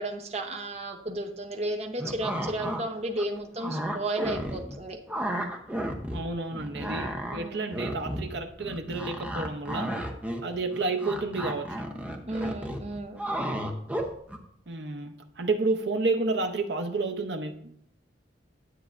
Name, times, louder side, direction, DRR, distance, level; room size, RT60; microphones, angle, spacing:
voice 1, 0.0-5.0 7.3-7.7 12.3-13.3, right 1 dB, 35° right, 0.9 m, -33 dB
sound 1, 2.0-2.8 3.2-4.8 5.1-6.2 6.5-14.4, equal, 10° right, 0.8 m, -33 dB
voice 2, 6.1-9.9 10.4-11.9 14.7-17.6, right 3 dB, 65° right, 0.7 m, -30 dB
10.0 x 8.3 x 2.5 m
head